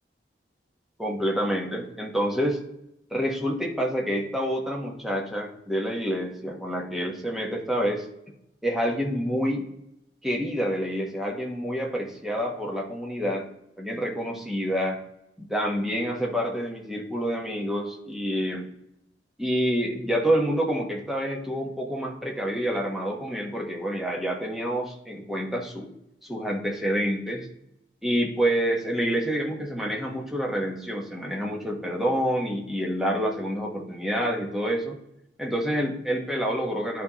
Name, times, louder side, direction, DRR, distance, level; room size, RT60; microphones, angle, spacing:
voice 1, 1.0-2.6 3.1-8.1 8.6-9.7 10.2-13.4 13.8-15.0 15.5-18.7 19.4-25.9 26.2-27.5 28.0-35.0 35.4-37.0, equal, ahead, -1 dB, 1.1 m, -27 dB
11.5 x 4.2 x 3.0 m, 0.82 s
head